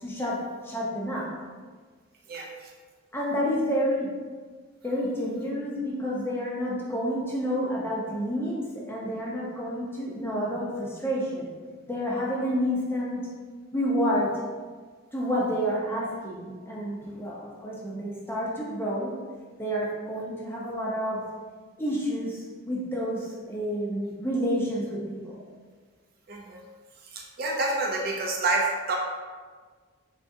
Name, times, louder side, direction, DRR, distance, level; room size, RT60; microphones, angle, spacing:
voice 1, 0.0-1.3 3.1-4.1 4.8-11.5 11.9-13.3 13.7-14.4 15.1-19.1 19.6-21.2 21.8-25.4, equal, 10° left, -5 dB, 0.6 m, -29 dB
voice 2, 2.3-2.7 26.3-26.6 27.1-29.0, right 2 dB, 45° right, 0 dB, 0.4 m, -28 dB
3.6 x 3.6 x 2.6 m, 1.5 s
head